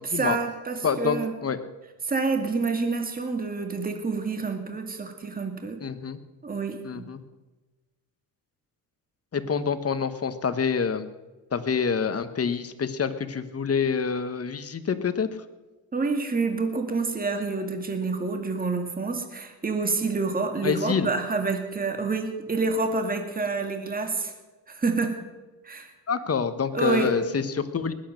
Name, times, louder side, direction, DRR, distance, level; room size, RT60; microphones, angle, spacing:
voice 1, 0.0-1.3 2.0-5.8 6.4-7.0 15.9-24.3 24.7-25.1 25.6-25.9 26.7-27.1, right 3 dB, 20° right, 5 dB, 2.0 m, -28 dB
voice 2, 0.8-1.6 5.8-6.2 6.8-7.2 9.3-11.1 11.5-15.3 20.6-21.1 26.1-27.9, left 6 dB, 30° left, 10 dB, 1.3 m, -27 dB
20.0 x 8.5 x 6.6 m, 1.2 s
supercardioid pair, 90°, 45 cm